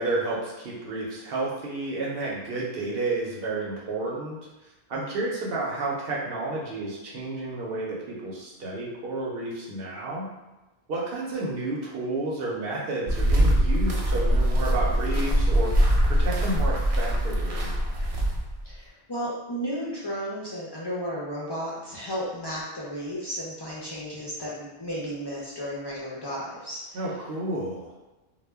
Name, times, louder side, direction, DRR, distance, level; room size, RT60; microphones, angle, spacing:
voice 1, 0.0-4.4 4.9-10.3 10.9-17.7 26.9-27.9, right 2 dB, 70° right, -4 dB, 0.8 m, -31 dB
sound 1, 13.1-18.6, equal, 55° right, 0.4 m, -23 dB
voice 2, 18.6-27.0, equal, 45° left, -7 dB, 0.3 m, -33 dB
2.1 x 2.1 x 3.3 m, 1.1 s
omnidirectional pair, 1.0 m